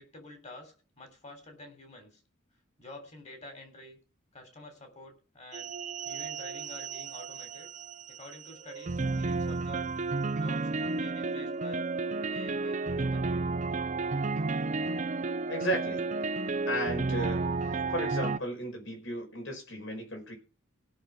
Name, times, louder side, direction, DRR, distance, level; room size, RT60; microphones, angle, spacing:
voice 1, 0.0-2.2 2.8-4.0 4.3-5.7 6.0-7.7 8.1-9.9 10.3-11.8 12.3-13.4, left 2 dB, 35° left, 5 dB, 3.4 m, -49 dB
sound 1, 5.5-18.4, right 3 dB, 35° right, 0.5 m, -32 dB
voice 2, 15.5-16.1 16.7-17.4 17.7-20.3, equal, 65° left, 1 dB, 5.3 m, -34 dB
17.0 x 6.2 x 6.0 m, 0.37 s
head